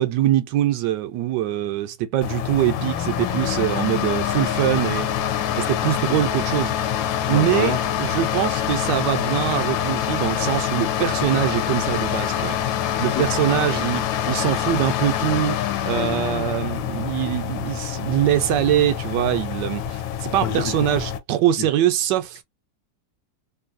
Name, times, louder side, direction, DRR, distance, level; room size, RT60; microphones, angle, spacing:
voice 1, 0.0-5.1 5.6-6.8 7.3-15.6 15.8-22.4, right 12 dB, 75° right, 1.1 m, -23 dB
sound 1, 2.2-21.2, left 10 dB, 90° left, 1.4 m, -25 dB
voice 2, 7.3-7.8 13.2-13.6 20.4-20.7 21.6-21.7, left 9 dB, 75° left, 1.2 m, -27 dB
3.2 x 2.6 x 2.4 m
omnidirectional pair, 2.0 m